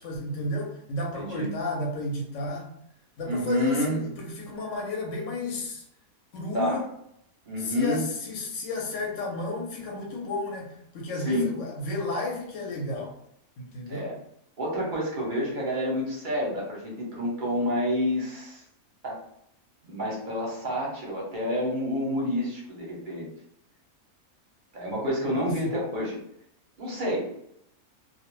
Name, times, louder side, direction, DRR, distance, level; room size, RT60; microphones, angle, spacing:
voice 1, 0.0-2.7 3.2-5.8 6.3-6.8 7.6-13.2 13.6-14.1 25.4-25.7, left 2 dB, 65° left, -1 dB, 0.9 m, -32 dB
voice 2, 1.1-1.5 3.3-4.0 6.5-6.8 7.5-8.0 11.2-11.5 13.9-14.1 14.6-18.6 19.0-19.2 19.8-23.3 24.7-26.2 26.8-27.3, equal, 45° right, -3 dB, 0.7 m, -29 dB
2.3 x 2.1 x 3.0 m, 0.73 s
omnidirectional pair, 1.5 m